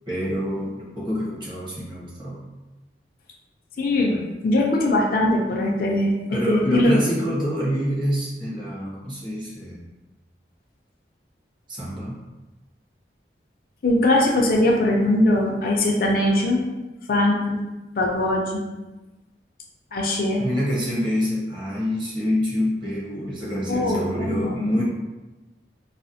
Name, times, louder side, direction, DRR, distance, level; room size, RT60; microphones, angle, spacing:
voice 1, 0.1-2.4 6.3-9.8 11.7-12.2 20.4-24.8, equal, 25° right, -6 dB, 0.8 m, -26 dB
voice 2, 3.8-6.9 13.8-16.6 17.1-17.6 18.0-18.6 19.9-20.4 23.7-24.8, left 1 dB, 55° left, -1 dB, 0.5 m, -21 dB
4.0 x 2.0 x 2.6 m, 1.1 s
head